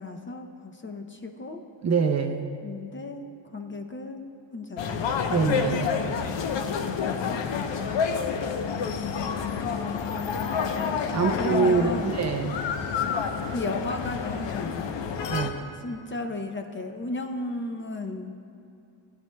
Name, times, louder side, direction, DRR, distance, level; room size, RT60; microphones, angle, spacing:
voice 1, 0.0-1.6 2.6-5.1 7.0-7.4 8.8-9.3 9.6-12.2 13.5-14.9 15.8-18.3, left 2 dB, 25° left, 4 dB, 0.6 m, -35 dB
voice 2, 1.8-2.5 5.3-6.0 11.1-12.6 15.3-15.5, right 5 dB, 35° right, 5 dB, 0.5 m, -25 dB
sound 1, 4.8-15.5, left 6 dB, 65° left, 0.8 m, -29 dB
18.0 x 9.9 x 2.2 m, 2.7 s
cardioid pair, 125°, 47 cm